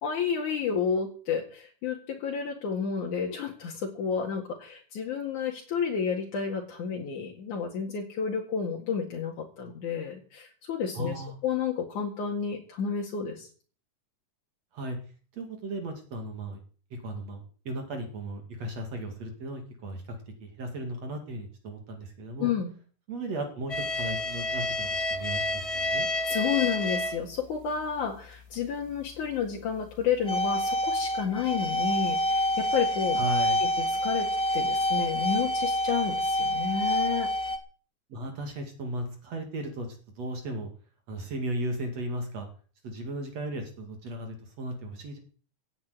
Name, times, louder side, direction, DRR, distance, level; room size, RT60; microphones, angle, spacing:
voice 1, 0.0-11.1 11.4-13.5 22.4-22.7 26.3-33.2 33.6-34.3 34.5-37.3, left 7 dB, 70° left, -1 dB, 3.4 m, -31 dB
voice 2, 10.9-11.3 14.7-15.0 15.3-16.6 16.9-22.5 23.1-26.1 33.2-33.6 38.1-39.9 40.2-40.7 41.1-42.5 42.8-45.2, right 1 dB, 55° right, 4 dB, 3.3 m, -36 dB
sound 1, 23.7-27.3 27.7-27.9 28.5-28.6 29.9-37.6, equal, 35° left, 0.5 m, -28 dB
17.0 x 7.2 x 9.5 m, 0.41 s
omnidirectional pair, 3.7 m